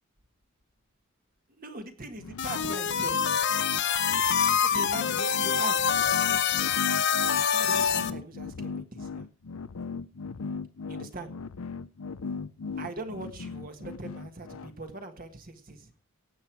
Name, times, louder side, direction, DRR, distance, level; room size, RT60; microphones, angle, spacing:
voice 1, 1.6-3.2 4.6-6.7 7.5-9.3 10.9-11.3 12.8-15.9, right 2 dB, 40° right, 6 dB, 1.6 m, -41 dB
sound 1, 2.2-14.7, left 4 dB, 80° left, 0.6 m, -38 dB
sound 2, 2.4-8.1, left 7 dB, 55° left, 0.8 m, -25 dB
17.5 x 7.7 x 4.6 m, 0.38 s
head